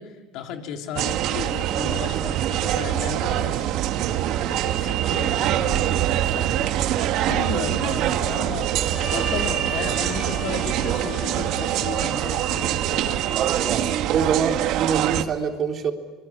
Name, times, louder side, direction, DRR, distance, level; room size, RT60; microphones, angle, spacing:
voice 1, 0.0-3.7 4.4-13.3, left 7 dB, 65° left, 4 dB, 3.3 m, -35 dB
sound 1, 1.0-15.2, right 12 dB, 65° right, 1.7 m, -24 dB
Trumpet, 8.9-13.4, left 6 dB, 40° left, 7.8 m, -38 dB
voice 2, 13.4-15.9, right 7 dB, 40° right, 3 dB, 3.5 m, -26 dB
26.0 x 22.0 x 8.8 m, 1.3 s
cardioid pair, 130°, 0 cm